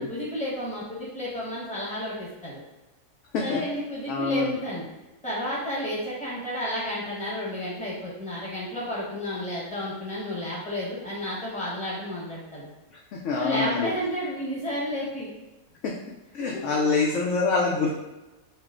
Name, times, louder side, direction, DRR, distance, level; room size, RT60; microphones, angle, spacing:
voice 1, 0.0-2.6 3.4-4.9 5.2-12.7 13.3-15.3 16.4-16.8, equal, 5° left, -7 dB, 1.0 m, -32 dB
voice 2, 4.1-4.6 13.1-13.9 15.8-15.9 16.3-17.9, left 4 dB, 65° left, -2 dB, 0.7 m, -25 dB
4.4 x 2.0 x 3.6 m, 1.0 s
omnidirectional pair, 1.6 m